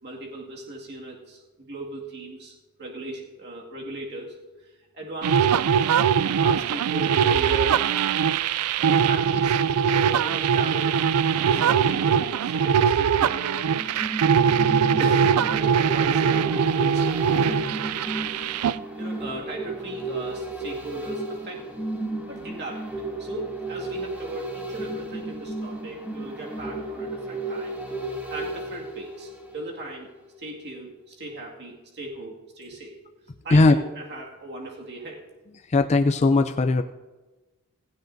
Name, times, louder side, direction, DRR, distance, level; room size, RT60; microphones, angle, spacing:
voice 1, 0.0-4.3 4.6-5.5 5.8-5.9 6.4-8.0 8.4-11.0 11.4-14.0 15.0-17.6 18.6-21.6 22.3-22.9 23.2-30.1 30.4-32.9 33.4-35.2, right 2 dB, 50° right, -1 dB, 2.1 m, -38 dB
sound 1, 5.2-18.7, right 7 dB, 85° right, 0.4 m, -22 dB
sound 2, 13.8-29.9 30.3-30.4, right 2 dB, 10° right, 2.5 m, -34 dB
voice 2, 35.7-36.8, left 3 dB, 30° left, 7 dB, 0.4 m, -18 dB
16.5 x 16.0 x 2.7 m, 1.2 s
head